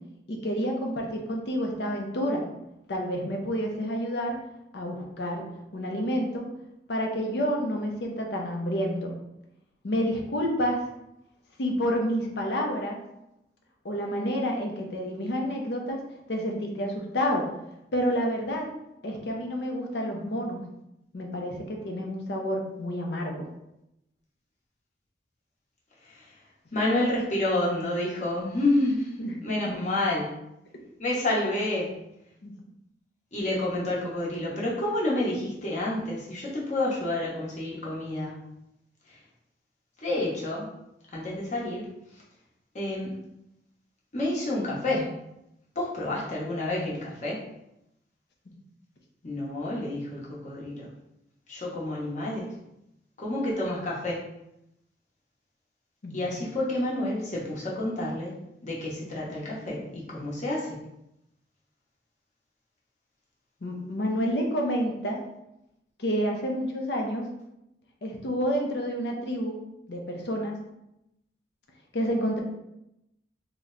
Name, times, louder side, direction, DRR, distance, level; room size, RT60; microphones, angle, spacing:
voice 1, 0.3-2.5 2.9-4.4 4.7-5.5 5.7-6.5 6.9-9.1 9.8-10.8 11.6-13.0 13.8-16.0 16.3-17.5 17.9-18.7 19.0-20.6 21.1-23.5 29.2-29.8 32.4-32.5 48.5-48.6 56.0-56.4 63.6-65.2 66.0-67.3 68.0-69.6 69.9-70.6 71.9-72.4, equal, 65° left, 1 dB, 0.6 m, -29 dB
voice 2, 26.7-29.1 29.4-30.3 31.0-31.9 33.3-38.5 40.0-40.7 41.1-41.9 42.7-43.2 44.1-45.1 45.7-47.4 49.2-50.9 51.5-52.5 53.2-54.2 56.1-58.3 58.6-60.8, left 1 dB, 45° left, -5 dB, 1.0 m, -29 dB
2.9 x 2.1 x 3.7 m, 0.85 s
head